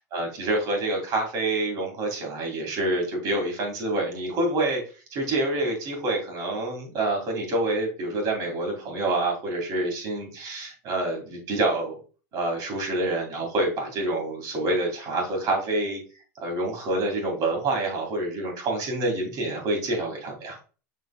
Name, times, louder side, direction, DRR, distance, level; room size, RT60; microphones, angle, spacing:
voice 1, 0.1-4.8 5.1-11.9 12.3-16.0 16.4-20.6, right 2 dB, 45° right, 2 dB, 2.2 m, -27 dB
6.4 x 3.5 x 2.3 m, 0.36 s
hypercardioid pair, 115°, 9 cm